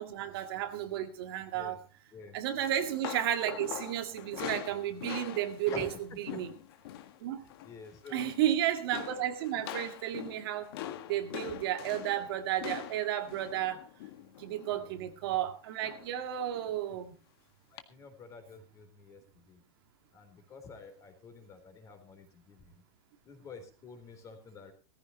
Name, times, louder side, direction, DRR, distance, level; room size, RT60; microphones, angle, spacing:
voice 1, 0.0-1.8 2.3-5.9 6.3-6.5 7.2-7.5 8.1-10.7 11.1-13.9 14.4-17.1, right 11 dB, 50° right, 1.9 m, -33 dB
sound 1, 2.6-7.2 7.4-7.8 8.1-8.5 8.9-14.9 15.8-16.2 16.5-16.7 17.8-17.9, left 12 dB, 55° left, 1.7 m, -43 dB
voice 2, 7.4-8.3 13.5-13.7 14.7-14.9 16.4-16.5 16.9-17.0 17.7-19.6 20.1-22.8 23.3-24.7, left 4 dB, 20° left, 3.8 m, -49 dB
18.5 x 15.0 x 3.1 m
supercardioid pair, 165°, 15 cm